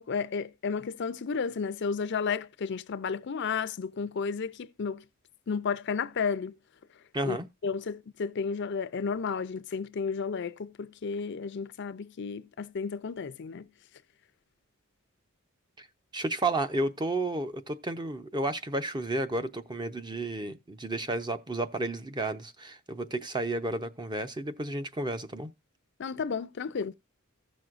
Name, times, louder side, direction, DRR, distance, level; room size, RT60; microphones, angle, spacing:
voice 1, 0.0-5.0 5.5-6.5 7.2-7.4 7.6-13.7 26.0-26.9, left 5 dB, 55° left, 0.5 m, -32 dB
voice 2, 7.1-7.5 15.8-15.9 16.1-25.5, right 2 dB, 20° right, 0.6 m, -32 dB
15.5 x 6.2 x 2.5 m
head